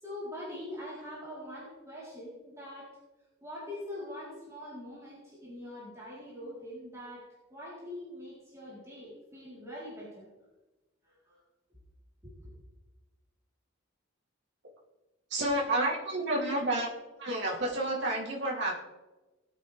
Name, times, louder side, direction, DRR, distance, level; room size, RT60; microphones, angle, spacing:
voice 1, 0.0-2.9 3.4-10.3 11.0-11.4 12.2-12.5, left 1 dB, 15° right, -9 dB, 4.0 m, -43 dB
voice 2, 15.3-16.9 17.2-18.7, right 1 dB, 60° right, -4 dB, 3.2 m, -30 dB
19.0 x 8.4 x 3.5 m, 1.1 s
head